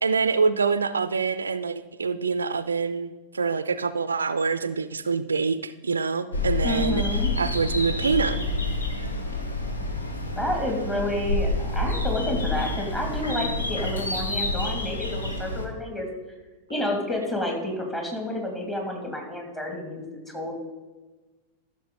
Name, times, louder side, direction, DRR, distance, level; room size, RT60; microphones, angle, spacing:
voice 1, 0.0-7.0 7.4-8.4, right 5 dB, 75° right, 13 dB, 0.4 m, -25 dB
sound 1, 6.3-15.7, left 2 dB, 75° left, 1.3 m, -28 dB
voice 2, 6.6-7.3 10.4-16.1 16.7-20.5, left 1 dB, 15° left, 1 dB, 2.5 m, -30 dB
14.0 x 6.5 x 4.0 m, 1.2 s
figure-of-eight pair, 90°, 0 cm